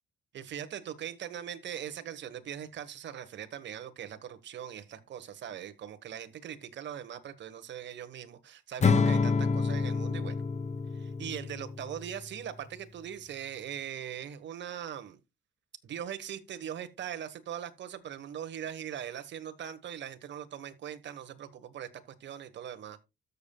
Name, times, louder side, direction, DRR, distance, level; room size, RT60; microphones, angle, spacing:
voice 1, 0.3-10.4 10.9-15.2 15.8-21.9 22.2-23.0, right 9 dB, 65° right, 1.4 m, -41 dB
Acoustic guitar / Strum, 8.8-12.1, left 4 dB, 35° left, 0.8 m, -28 dB
13.0 x 7.0 x 2.3 m
cardioid pair, 90°, 20 cm